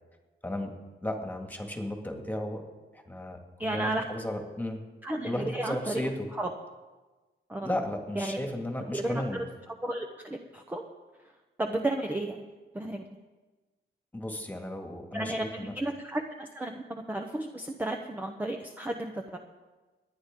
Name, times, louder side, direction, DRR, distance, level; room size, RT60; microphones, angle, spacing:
voice 1, 1.0-2.6 2.9-4.8 5.2-6.3 7.6-9.4 14.1-15.7, left 1 dB, 10° left, 2 dB, 2.0 m, -34 dB
voice 2, 3.6-4.0 5.0-6.0 6.4-6.5 7.5-7.7 8.2-8.4 8.9-9.4 9.8-10.8 11.6-12.4 12.7-13.1 15.1-19.4, right 1 dB, 10° right, 3 dB, 0.9 m, -33 dB
29.5 x 9.9 x 3.8 m, 1.3 s
wide cardioid pair, 125°, 19 cm